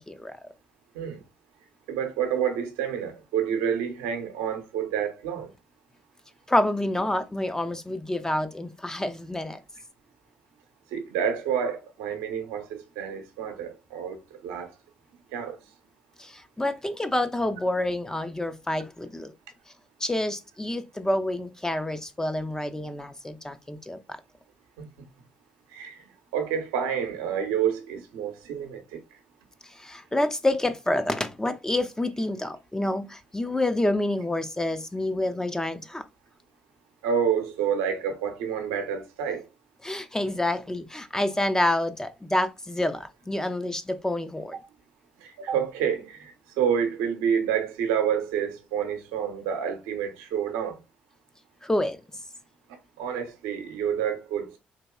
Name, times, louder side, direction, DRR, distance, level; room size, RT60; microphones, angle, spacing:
voice 1, 1.9-5.5 10.9-14.7 15.3-15.6 24.8-25.1 25.7-29.0 37.0-39.4 45.2-50.8 52.7-54.6, right 8 dB, 80° right, 0.8 m, -29 dB
voice 2, 6.5-9.6 16.6-19.3 20.0-24.0 29.9-36.0 39.8-44.5 51.7-52.0, left 1 dB, 15° left, 0.5 m, -28 dB
4.1 x 2.9 x 2.2 m
hypercardioid pair, 50°, 4 cm